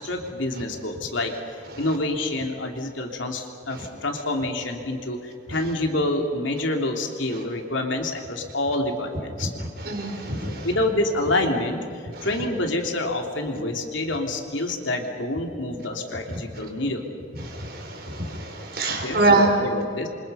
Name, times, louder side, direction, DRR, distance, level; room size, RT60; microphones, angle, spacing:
voice 1, 0.0-9.5 10.5-17.1 19.0-20.1, left 2 dB, 80° left, 2 dB, 3.2 m, -27 dB
voice 2, 9.4-10.7 12.2-12.3 17.4-19.6, right 2 dB, 50° right, 2 dB, 4.6 m, -24 dB
28.0 x 25.0 x 5.7 m, 2.4 s
head